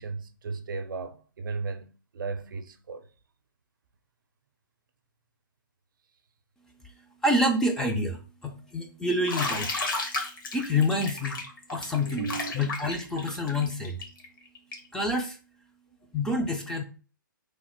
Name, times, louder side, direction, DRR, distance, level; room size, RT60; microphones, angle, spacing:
voice 1, 0.0-3.1 12.1-12.7, right 4 dB, 70° right, 0.5 m, -36 dB
voice 2, 7.2-9.7 10.5-11.4 11.7-12.3 12.5-14.0 14.9-15.4 16.1-16.8, left 1 dB, 5° left, 0.3 m, -27 dB
Bathtub (filling or washing), 9.3-14.9, left 3 dB, 70° left, 1.2 m, -33 dB
3.1 x 2.0 x 4.2 m
hypercardioid pair, 145°, 11 cm